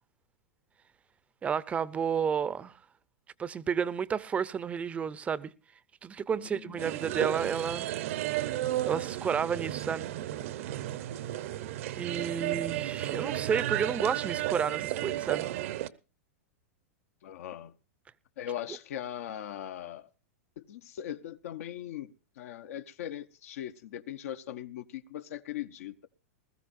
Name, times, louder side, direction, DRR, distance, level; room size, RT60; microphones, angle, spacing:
voice 1, 1.4-2.7 3.4-5.5 6.0-7.9 8.8-10.1 11.9-15.5, right 7 dB, 15° right, 0.6 m, -31 dB
voice 2, 6.4-6.9 7.4-7.5 17.2-17.7 18.4-20.1 20.6-26.1, left 11 dB, 70° left, 0.9 m, -40 dB
sound 1, 6.8-15.9, right 14 dB, 60° right, 0.8 m, -33 dB
20.5 x 14.0 x 2.6 m
supercardioid pair, 140°, 8 cm